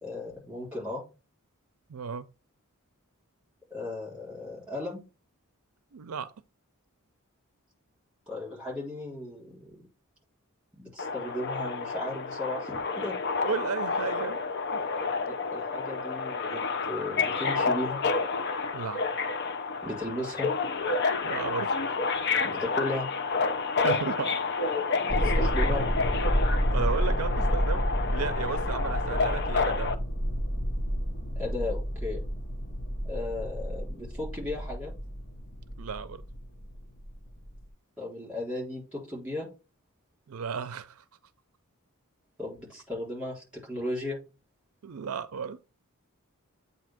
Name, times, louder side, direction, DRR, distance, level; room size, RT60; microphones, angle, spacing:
voice 1, 0.0-1.0 3.7-5.0 8.3-9.8 10.8-13.2 15.5-16.6 16.9-18.0 19.8-20.5 22.4-23.1 25.0-25.9 31.4-32.2 33.0-34.9 38.0-39.5 42.4-44.2, left 1 dB, 5° right, 3.9 m, -35 dB
voice 2, 1.9-2.3 5.9-6.3 13.4-14.4 14.7-14.8 18.7-19.0 21.2-21.8 22.4-22.5 23.8-24.4 26.7-29.9 35.8-36.2 40.3-41.0 44.8-45.6, right 5 dB, 75° right, 0.5 m, -34 dB
Subway metro underground, 11.0-29.9, left 4 dB, 50° left, 0.7 m, -30 dB
sound 1, 25.1-37.6, equal, 35° left, 1.3 m, -30 dB
8.2 x 2.8 x 5.8 m
head